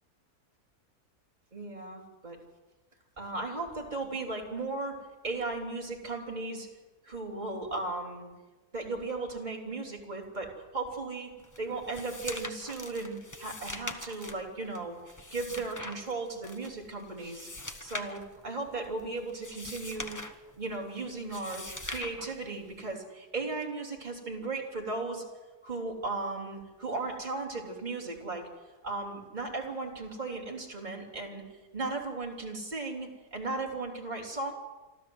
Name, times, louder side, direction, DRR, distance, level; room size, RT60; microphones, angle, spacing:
voice 1, 1.5-2.4 3.2-6.7 7.0-8.3 8.7-15.0 15.3-17.5 17.8-20.2 20.6-25.2 25.6-28.5 28.8-31.4 31.7-34.5, right 3 dB, 25° right, 0 dB, 3.4 m, -36 dB
sound 1, 11.4-22.9, left 1 dB, 15° left, 1.0 m, -43 dB
26.5 x 13.0 x 7.9 m, 1.2 s
omnidirectional pair, 1.7 m